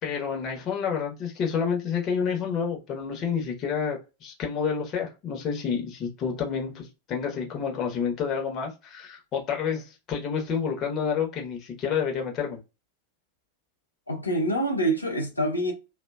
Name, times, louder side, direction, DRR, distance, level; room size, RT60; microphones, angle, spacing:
voice 1, 0.0-12.6, left 6 dB, 35° left, 0.9 m, -29 dB
voice 2, 14.1-15.7, right 1 dB, 85° left, 0.6 m, -26 dB
2.6 x 2.1 x 2.3 m
figure-of-eight pair, 90°, 0 cm